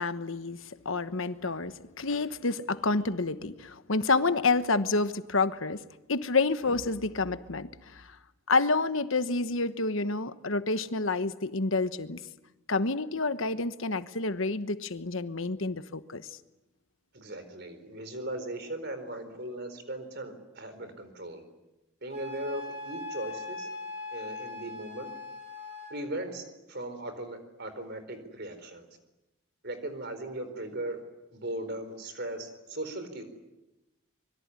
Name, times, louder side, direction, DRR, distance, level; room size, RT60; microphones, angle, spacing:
voice 1, 0.0-5.8 6.1-8.1 8.5-12.2 12.7-16.3, left 3 dB, 70° left, 12 dB, 1.2 m, -29 dB
voice 2, 17.1-21.4 22.0-23.7 24.1-25.1 25.9-28.8 29.6-31.0 31.3-33.2, right 1 dB, 50° right, 9 dB, 4.3 m, -38 dB
Wind instrument woodwind instrument, 22.1-26.0, left 3 dB, 30° right, 6.3 m, -40 dB
25.5 x 22.5 x 9.7 m, 0.99 s
head